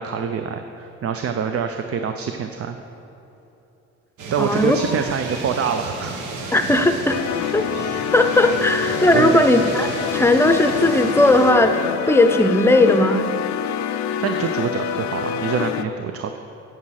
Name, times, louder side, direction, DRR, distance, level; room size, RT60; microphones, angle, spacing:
voice 1, 0.0-2.8 4.3-6.2 9.1-9.4 14.2-16.4, right 7 dB, 50° right, 6 dB, 0.6 m, -25 dB
sound 1, 4.2-11.5, right 3 dB, 80° right, 1.4 m, -33 dB
voice 2, 4.4-4.8 6.5-7.2 7.5-7.7 8.1-11.8 12.1-13.2, left 2 dB, 10° left, 7 dB, 0.7 m, -17 dB
sound 2, 7.1-15.8, left 8 dB, 65° left, 0.5 m, -26 dB
9.6 x 7.5 x 6.3 m, 2.9 s
cardioid pair, 90°, 30 cm